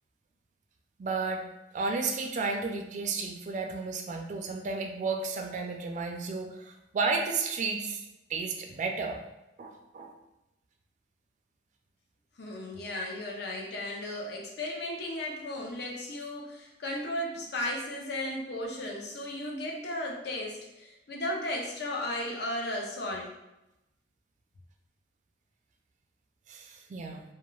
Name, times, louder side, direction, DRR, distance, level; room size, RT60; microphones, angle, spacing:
voice 1, 1.0-1.5 1.7-8.0 8.3-9.2 9.6-10.1 26.5-27.2, right 4 dB, 45° right, 3 dB, 0.3 m, -32 dB
voice 2, 12.4-23.3, left 1 dB, 65° left, -1 dB, 0.6 m, -35 dB
2.3 x 2.3 x 3.0 m, 0.93 s
head